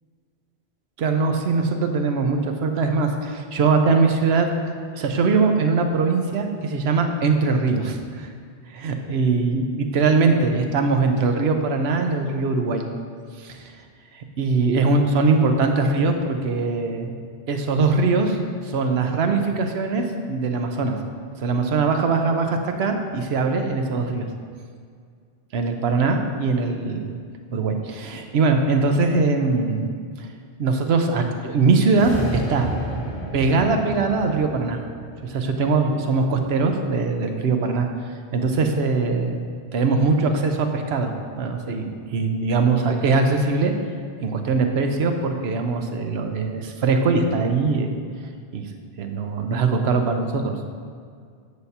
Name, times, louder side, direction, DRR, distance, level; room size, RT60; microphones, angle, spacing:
voice 1, 1.0-4.5 4.9-8.3 8.7-12.8 13.4-13.7 14.1-17.1 17.5-18.4 18.6-21.0 21.4-24.3 25.5-27.2 27.5-29.9 30.2-30.3 30.6-32.7 33.3-34.8 35.2-37.9 38.3-39.4 39.7-43.7 44.2-48.0 48.5-48.6 49.0-50.6, right 4 dB, 70° right, 5 dB, 0.9 m, -21 dB
sound 1, 31.8-36.2, right 1 dB, 60° left, 1.5 m, -33 dB
8.1 x 7.8 x 2.8 m, 2.1 s
omnidirectional pair, 1.1 m